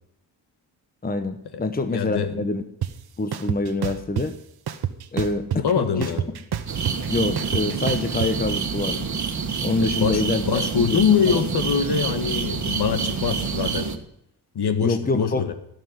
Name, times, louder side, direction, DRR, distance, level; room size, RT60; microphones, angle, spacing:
voice 1, 1.0-2.6 3.2-4.3 5.1-5.5 5.8-6.1 7.1-9.1 9.6-11.0 11.3-11.4 14.8-15.4, left 3 dB, 20° left, 1.1 m, -26 dB
voice 2, 1.9-2.4 5.5-6.3 9.8-13.9 14.6-15.5, left 6 dB, 65° left, 1.8 m, -24 dB
sound 1, 2.8-2.9 3.3-4.3 4.7-5.7 6.0-8.3, right 9 dB, 60° right, 1.2 m, -27 dB
sound 2, 6.7-14.0, right 5 dB, 40° right, 1.7 m, -27 dB
16.5 x 6.7 x 9.6 m
cardioid pair, 90°, 42 cm